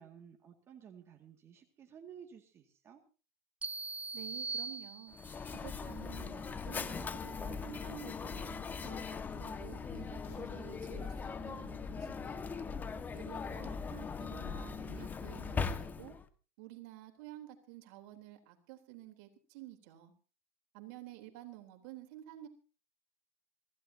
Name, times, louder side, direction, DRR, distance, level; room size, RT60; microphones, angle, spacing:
voice 1, 0.0-3.0, right 8 dB, 35° right, 4 dB, 2.2 m, -54 dB
sound 1, 3.6-5.5, right 4 dB, 15° right, 1.0 m, -41 dB
voice 2, 4.1-5.2 5.5-12.7 13.1-16.2 16.6-20.1 20.7-22.5, right 14 dB, 60° right, 5 dB, 3.7 m, -51 dB
Mechanisms, 5.1-16.3, left 5 dB, 20° left, 1.6 m, -40 dB
sound 2, 7.9-11.2, left 8 dB, 55° left, 5.0 m, -57 dB
25.0 x 16.0 x 2.8 m, 0.37 s
hypercardioid pair, 90°, 8 cm